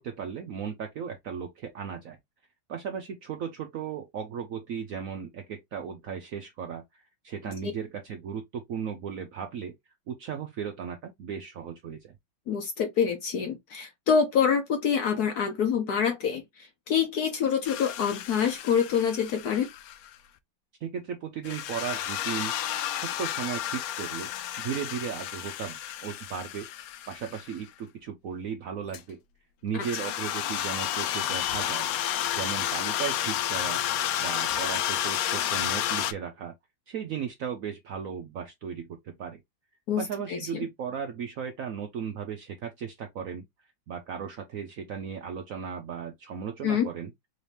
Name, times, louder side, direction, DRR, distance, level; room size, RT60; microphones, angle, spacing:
voice 1, 0.0-2.2 2.7-9.8 10.1-12.1 20.8-22.5 22.9-24.3 24.6-26.7 27.1-29.2 29.6-31.9 32.3-33.8 34.2-36.5 36.9-39.4 40.0-43.4 43.9-47.1, right 7 dB, 75° right, 0.7 m, -36 dB
voice 2, 12.5-16.4 16.9-19.7 39.9-40.0 40.3-40.6 46.6-46.9, left 7 dB, 65° left, 1.2 m, -26 dB
sound 1, 17.6-20.1 21.4-27.6 28.9-29.0 29.8-36.1, left 11 dB, 80° left, 0.8 m, -31 dB
4.0 x 2.7 x 3.2 m
omnidirectional pair, 2.0 m